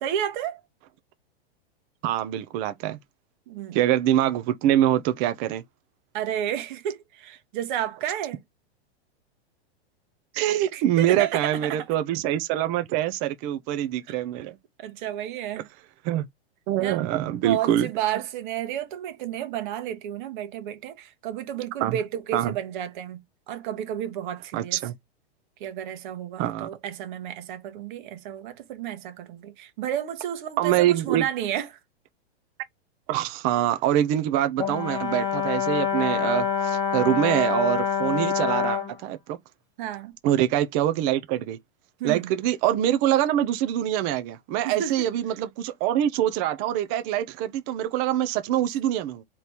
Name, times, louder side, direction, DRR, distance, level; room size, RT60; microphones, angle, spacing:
voice 1, 0.0-0.6 3.5-3.8 6.1-8.4 10.7-11.8 14.1-14.2 14.8-15.7 16.8-17.0 17.4-23.2 23.5-24.8 25.6-31.7 39.8-40.1 42.0-42.3 44.6-45.1, right 10 dB, 50° right, 1.1 m, -31 dB
voice 2, 2.0-3.0 3.7-5.6 10.3-14.6 16.0-16.3 16.7-17.9 21.8-22.0 22.3-22.6 24.5-24.9 26.4-26.7 30.6-31.2 33.1-39.4 40.2-41.6 42.0-49.2, right 12 dB, 25° right, 0.4 m, -24 dB
Brass instrument, 34.6-38.9, left 7 dB, 10° left, 0.7 m, -26 dB
3.9 x 3.0 x 3.3 m
hypercardioid pair, 145°, 32 cm